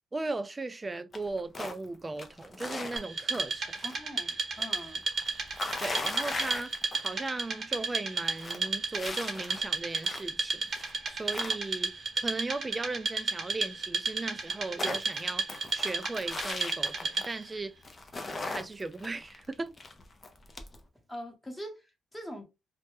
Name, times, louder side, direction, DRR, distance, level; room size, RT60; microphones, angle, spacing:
voice 1, 0.1-3.7 5.8-6.7 7.0-10.6 11.1-15.5 15.7-17.7 18.5-19.7, right 3 dB, 20° right, 0.3 m, -37 dB
sound 1, 1.1-1.9 2.2-4.0 4.3-7.3 7.6-7.7 8.1-10.4 10.7-12.0 13.5-13.6 13.8-13.9 14.2-17.5 17.8-20.8, left 3 dB, 30° left, 0.5 m, -39 dB
Wood, 3.0-17.5, right 4 dB, 50° right, 0.9 m, -33 dB
voice 2, 3.8-5.1 21.1-22.4, equal, 10° left, 0.9 m, -43 dB
2.1 x 2.0 x 2.9 m
cardioid pair, 90°, 0 cm